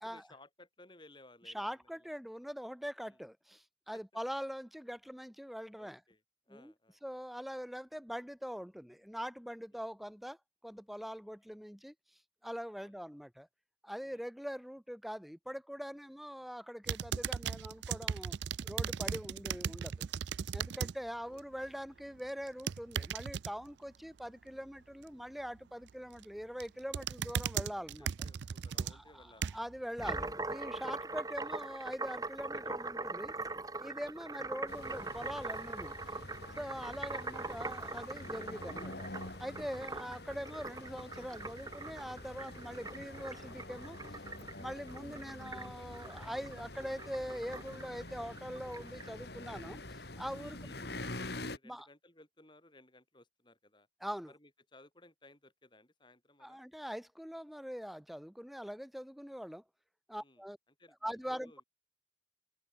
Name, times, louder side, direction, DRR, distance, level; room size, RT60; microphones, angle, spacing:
voice 1, 0.0-2.1 3.1-3.2 3.9-4.2 5.8-7.0 9.7-9.9 12.7-13.1 14.0-14.3 19.5-19.6 20.7-20.8 21.3-21.4 21.9-22.1 27.7-30.3 33.8-34.0 50.3-53.9 54.3-56.6 60.2-61.6, left 2 dB, 25° left, 6.6 m, -61 dB
voice 2, 1.5-6.0 6.5-6.7 7.0-10.4 10.6-11.9 12.4-13.5 13.8-18.4 18.6-19.9 20.5-28.1 28.9-29.2 29.5-33.3 33.8-35.9 36.6-39.1 39.4-44.0 44.6-50.7 51.6-51.8 54.0-54.3 56.4-59.6 60.1-60.6 61.0-61.6, equal, ahead, 0.8 m, -43 dB
sound 1, 16.8-20.9 21.3-21.7 22.5-23.5 25.9-26.2 26.6-29.8 30.3-30.4, right 7 dB, 70° right, 0.4 m, -37 dB
sound 2, 30.0-49.1, right 3 dB, 20° right, 2.2 m, -42 dB
sound 3, 34.7-51.6, left 2 dB, 60° left, 3.0 m, -47 dB
head